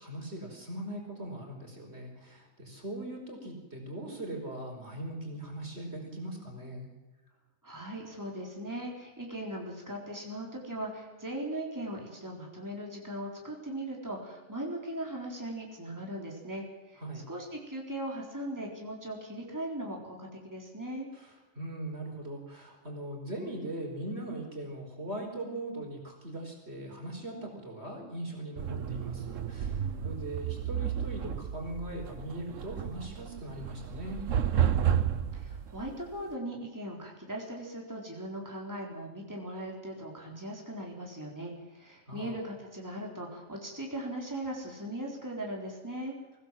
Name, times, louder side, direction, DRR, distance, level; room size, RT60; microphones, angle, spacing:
voice 1, 0.0-6.9 17.0-17.2 21.1-34.2 42.1-42.4, right 1 dB, 55° right, 1 dB, 5.1 m, -40 dB
voice 2, 7.6-17.0 17.3-21.1 35.3-46.2, right 1 dB, 15° right, -1 dB, 4.0 m, -39 dB
sound 1, 28.6-36.2, right 9 dB, 80° right, 1.4 m, -32 dB
23.5 x 17.0 x 7.7 m, 1.1 s
omnidirectional pair, 1.3 m